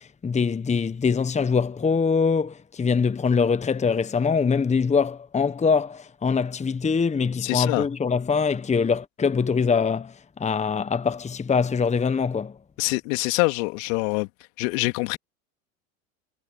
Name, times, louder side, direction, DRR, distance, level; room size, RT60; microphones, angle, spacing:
voice 1, 0.0-12.5, left 5 dB, 15° left, 1.3 m, -23 dB
voice 2, 7.4-7.9 12.8-14.3 14.6-15.2, left 28 dB, 65° left, 2.4 m, -25 dB
hypercardioid pair, 85°, 42 cm